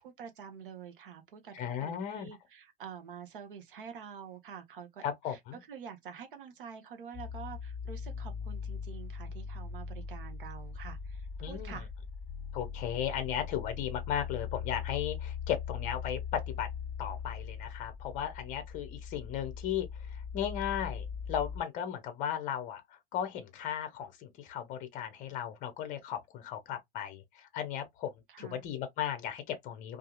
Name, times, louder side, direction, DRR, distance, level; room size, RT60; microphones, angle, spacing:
voice 1, 0.0-5.4 5.7-11.9 28.3-28.6, right 7 dB, 60° right, 0.8 m, -47 dB
voice 2, 1.5-2.3 5.0-5.6 11.4-11.8 12.5-16.7 17.0-19.9 20.3-22.8 23.1-28.1 28.4-30.0, left 9 dB, 25° left, 0.6 m, -36 dB
sound 1, 7.1-21.6, left 6 dB, 10° left, 1.1 m, -40 dB
2.7 x 2.4 x 2.3 m
figure-of-eight pair, 95°, 29 cm